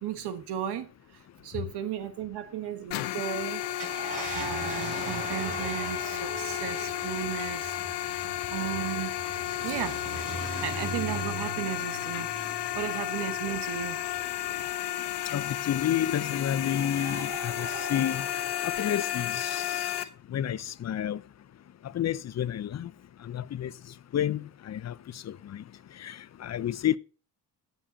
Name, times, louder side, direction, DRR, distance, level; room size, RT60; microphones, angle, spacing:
voice 1, 0.0-3.6 4.3-8.2 8.5-9.2 9.6-10.0 10.5-14.0, right 10 dB, 80° right, 1.4 m, -35 dB
sound 1, 2.9-20.0, left 13 dB, 85° left, 1.1 m, -33 dB
sound 2, 3.3-19.9, right 2 dB, 20° right, 2.4 m, -45 dB
Car, 3.6-14.5 15.0-15.1 17.1-17.3, right 3 dB, 50° right, 6.0 m, -41 dB
voice 2, 15.3-18.2 18.6-19.9 20.3-21.2 21.9-22.9 23.2-23.7 24.1-24.9 25.3-25.6 26.0-27.0, left 10 dB, 40° left, 0.6 m, -30 dB
16.5 x 7.1 x 2.8 m
cardioid pair, 95°, 39 cm